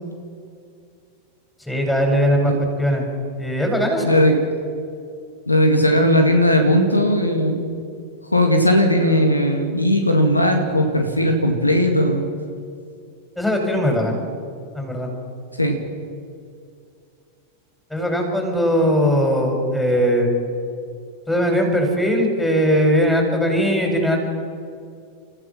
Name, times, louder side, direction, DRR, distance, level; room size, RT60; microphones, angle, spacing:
voice 1, 1.7-2.5 2.8-3.0 3.4-4.2 13.4-14.2 14.7-15.1 17.9-20.3 21.3-24.2, equal, 5° left, 2 dB, 5.3 m, -19 dB
voice 2, 4.0-4.4 5.5-7.7 8.3-12.3 15.6-15.8, equal, 85° left, 5 dB, 2.1 m, -17 dB
30.0 x 14.5 x 6.0 m, 2.4 s
figure-of-eight pair, 90°, 0 cm